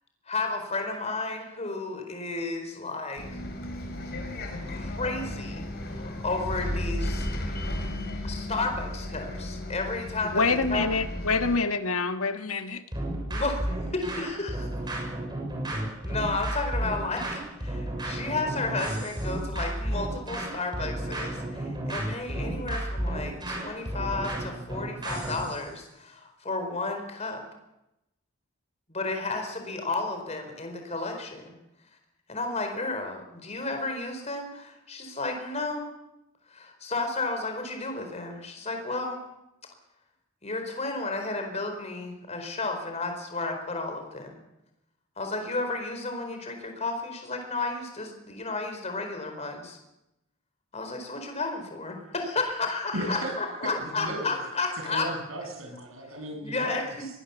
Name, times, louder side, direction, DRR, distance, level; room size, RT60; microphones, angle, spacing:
voice 1, 0.3-3.3 4.7-7.3 8.2-10.9 13.3-15.0 16.0-27.4 28.9-31.6 32.3-35.9 36.5-39.2 40.4-44.4 45.2-49.8 50.7-55.1 56.4-57.1, left 3 dB, 30° left, 4.4 m, -32 dB
Bus, 3.2-11.6, left 1 dB, 50° left, 4.9 m, -34 dB
voice 2, 10.2-12.8, left 4 dB, 90° left, 1.5 m, -26 dB
sound 1, 12.9-25.6, right 1 dB, 20° right, 7.1 m, -32 dB
voice 3, 52.9-54.4 54.8-56.8, right 1 dB, 80° right, 7.7 m, -35 dB
23.0 x 20.0 x 7.2 m
head